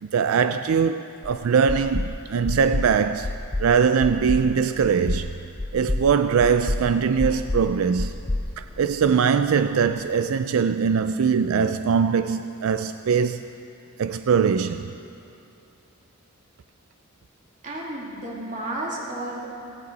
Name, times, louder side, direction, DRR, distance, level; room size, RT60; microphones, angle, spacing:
voice 1, 0.0-3.3 3.6-5.3 5.7-8.2 8.6-13.5 14.0-14.9, right 6 dB, 85° right, 0.4 m, -22 dB
sound 1, 1.2-1.3 1.7-2.1 2.5-2.9 3.2-3.7 4.0-4.4 4.8-5.2 5.6-6.1 6.4-6.8 7.2-7.7 8.0-9.2, left 2 dB, 25° left, 0.6 m, -27 dB
voice 2, 17.6-19.5, right 1 dB, 40° right, 2.8 m, -32 dB
17.5 x 16.5 x 4.1 m
head